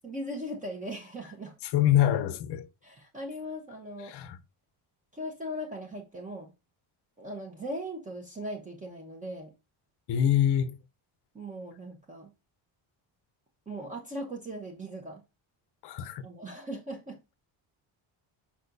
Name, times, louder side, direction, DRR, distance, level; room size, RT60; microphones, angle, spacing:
voice 1, 0.0-1.6 2.8-4.2 5.1-6.5 7.2-9.5 11.3-12.3 13.7-15.2 16.2-17.2, equal, 15° right, 1.0 m, -39 dB
voice 2, 1.6-2.7 4.1-4.4 10.1-10.8 15.8-16.2, left 11 dB, 55° left, 0.8 m, -25 dB
6.3 x 5.8 x 2.6 m
cardioid pair, 175°, 48 cm